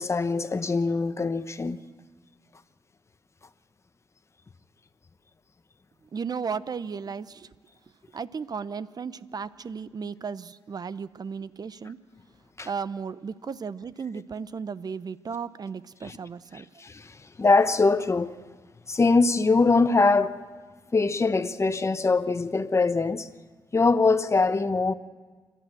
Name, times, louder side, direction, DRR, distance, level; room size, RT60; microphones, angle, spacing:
voice 1, 0.0-1.8 12.6-12.7 16.0-16.2 16.5-18.3 18.9-20.4 20.9-23.3 23.7-24.9, left 3 dB, 30° left, 1.0 m, -23 dB
voice 2, 6.1-7.5 8.1-12.0 12.6-16.7, right 6 dB, 45° right, 0.7 m, -35 dB
28.5 x 12.0 x 7.7 m
cardioid pair, 75°, 9 cm